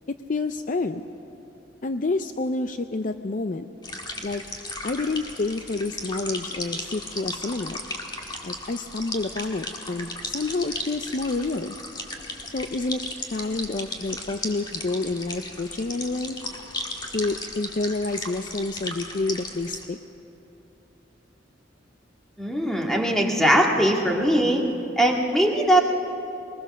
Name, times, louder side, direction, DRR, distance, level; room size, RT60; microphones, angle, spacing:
voice 1, 0.3-1.0 1.8-3.7 4.2-4.4 4.8-7.8 8.4-11.8 12.5-13.0 13.3-16.4 17.1-20.0, left 3 dB, 45° left, 9 dB, 0.5 m, -28 dB
sound 1, 3.8-19.8, left 2 dB, 25° left, 1.7 m, -36 dB
voice 2, 22.4-24.6 25.0-25.8, right 1 dB, ahead, 0 dB, 1.9 m, -20 dB
22.0 x 20.5 x 6.5 m, 2.9 s
head